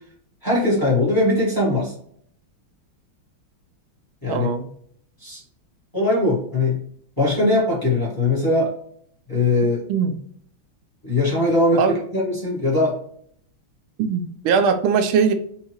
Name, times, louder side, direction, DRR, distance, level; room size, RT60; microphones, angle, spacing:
voice 1, 0.4-1.9 4.2-4.5 5.2-5.4 5.9-6.8 7.2-8.7 9.3-9.8 11.0-13.0, left 2 dB, 10° left, -6 dB, 1.4 m, -20 dB
voice 2, 4.3-4.7 9.9-10.2 11.8-12.0 14.0-15.3, right 6 dB, 90° right, 8 dB, 1.5 m, -20 dB
4.4 x 2.8 x 3.0 m, 0.63 s
omnidirectional pair, 2.3 m